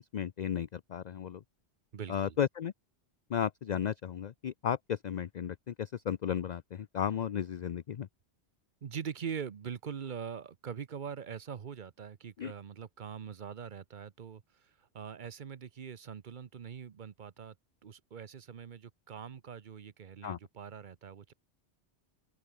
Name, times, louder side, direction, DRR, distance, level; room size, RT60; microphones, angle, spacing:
voice 1, 0.0-1.4 2.1-2.7 3.3-8.1 12.4-12.5 20.2-20.4, left 8 dB, 50° left, 0.6 m, -34 dB
voice 2, 1.9-2.4 8.8-17.6 17.8-21.3, right 7 dB, 50° right, 0.9 m, -43 dB
open air
omnidirectional pair, 1.1 m